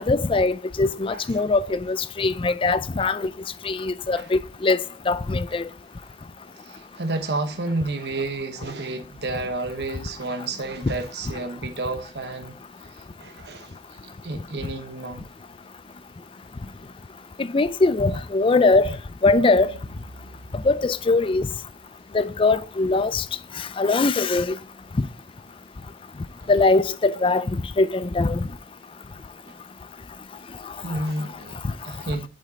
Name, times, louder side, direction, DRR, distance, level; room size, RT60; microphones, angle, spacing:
voice 1, 0.0-3.3 3.6-5.7 17.4-19.0 19.2-19.7 20.5-21.5 22.1-23.2 23.8-24.5 26.5-28.5, left 3 dB, 30° left, 0.4 m, -21 dB
voice 2, 1.1-1.4 4.2-4.3 6.6-12.6 12.9-13.8 14.2-15.2 26.4-26.5 29.5-29.6 30.8-32.3, right 2 dB, 65° right, 1.0 m, -31 dB
sound 1, 19.6-22.2, right 1 dB, 85° right, 0.9 m, -46 dB
7.5 x 5.3 x 4.2 m
head